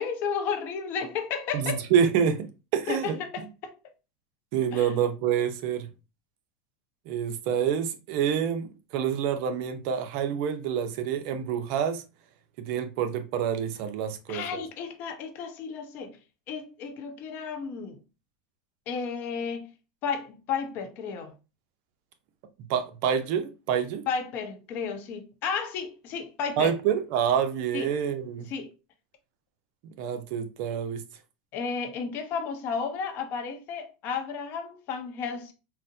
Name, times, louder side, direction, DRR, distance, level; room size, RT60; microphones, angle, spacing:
voice 1, 0.0-1.9 2.9-3.7 4.7-4.9 14.3-16.2 16.5-18.0 18.9-19.7 20.0-21.3 24.1-26.7 27.7-27.9 28.5-28.7 31.5-35.5, left 6 dB, 50° left, 0.7 m, -33 dB
voice 2, 1.5-3.2 4.5-5.9 7.1-12.0 12.6-14.6 22.7-24.0 26.6-28.5 29.8-31.0, right 8 dB, 60° right, 0.5 m, -27 dB
3.9 x 2.1 x 2.6 m
supercardioid pair, 125°, 4 cm